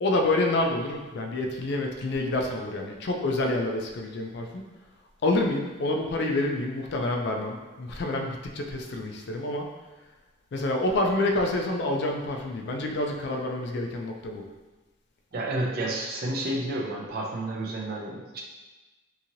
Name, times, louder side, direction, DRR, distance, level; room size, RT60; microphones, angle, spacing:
voice 1, 0.0-4.6 5.2-9.7 10.5-14.4, left 2 dB, 55° left, 2 dB, 0.3 m, -28 dB
voice 2, 15.3-18.4, right 1 dB, 45° right, -2 dB, 0.4 m, -30 dB
2.9 x 2.7 x 2.5 m, 1.2 s
head